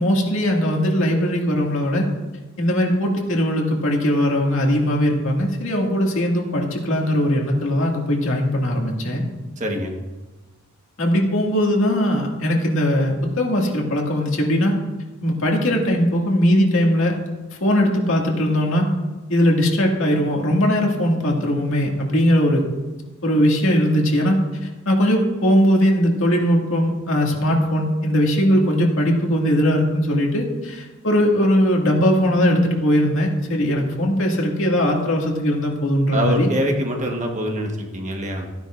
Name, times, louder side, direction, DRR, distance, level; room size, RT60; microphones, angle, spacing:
voice 1, 0.0-2.1 2.6-9.2 11.0-14.7 15.2-17.1 17.6-18.9 19.3-22.6 23.2-24.4 24.9-36.5, equal, 65° left, -1 dB, 2.2 m, -19 dB
voice 2, 9.6-9.9 36.1-38.5, equal, 35° right, 2 dB, 1.4 m, -24 dB
15.0 x 10.0 x 2.6 m, 1.2 s
head